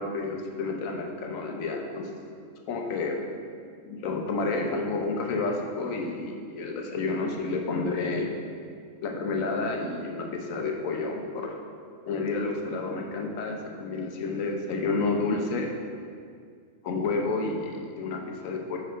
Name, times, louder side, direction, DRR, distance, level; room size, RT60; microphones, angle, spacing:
voice 1, 0.0-2.1 2.7-3.2 3.8-8.3 9.0-11.6 12.1-15.7 16.8-18.8, left 3 dB, 85° left, 2 dB, 1.1 m, -30 dB
5.4 x 4.9 x 4.4 m, 2.2 s
omnidirectional pair, 1.4 m